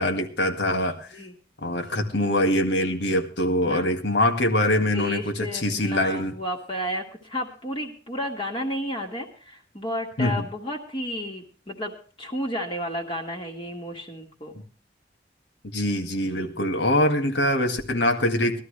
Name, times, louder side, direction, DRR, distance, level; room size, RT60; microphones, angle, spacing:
voice 1, 0.0-1.1 1.6-6.3 10.2-10.5 15.7-18.6, left 1 dB, 90° left, 5 dB, 2.0 m, -23 dB
voice 2, 4.9-14.6 16.4-16.6, equal, 30° left, 0 dB, 1.9 m, -32 dB
19.5 x 12.5 x 3.3 m, 0.40 s
head